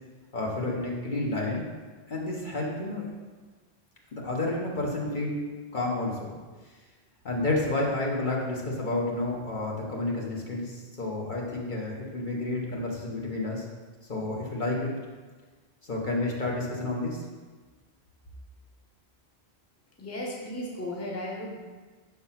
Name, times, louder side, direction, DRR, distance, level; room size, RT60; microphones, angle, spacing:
voice 1, 0.3-1.7 2.1-3.1 4.1-5.4 5.7-6.3 7.2-13.6 14.1-14.9 15.8-17.2, left 2 dB, 50° left, -3 dB, 1.2 m, -30 dB
voice 2, 20.0-21.6, left 1 dB, 15° left, -3 dB, 0.9 m, -35 dB
5.7 x 3.9 x 5.7 m, 1.4 s
omnidirectional pair, 1.1 m